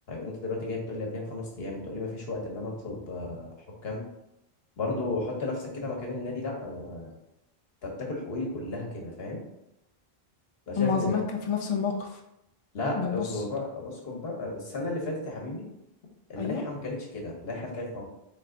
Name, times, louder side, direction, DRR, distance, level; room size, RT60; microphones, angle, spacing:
voice 1, 0.1-3.5 3.8-4.0 4.8-7.1 7.8-9.4 10.7-11.2 12.7-15.6 16.3-18.0, left 2 dB, 70° left, 0 dB, 1.3 m, -34 dB
voice 2, 10.8-12.2 12.9-13.4 16.4-16.6, left 6 dB, 40° left, 2 dB, 0.5 m, -29 dB
3.8 x 3.3 x 3.8 m, 0.85 s
omnidirectional pair, 1.1 m